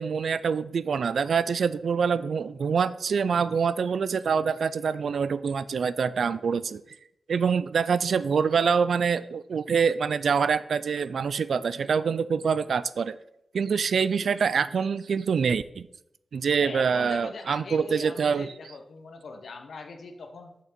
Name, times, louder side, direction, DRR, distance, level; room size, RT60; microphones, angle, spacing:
voice 1, 0.0-6.8 7.3-13.2 13.5-15.9 16.3-18.5, right 6 dB, 80° right, 15 dB, 0.3 m, -25 dB
voice 2, 16.6-20.6, left 3 dB, 75° left, 5 dB, 0.8 m, -41 dB
6.8 x 5.8 x 4.4 m, 0.78 s
cardioid pair, 70°, 0 cm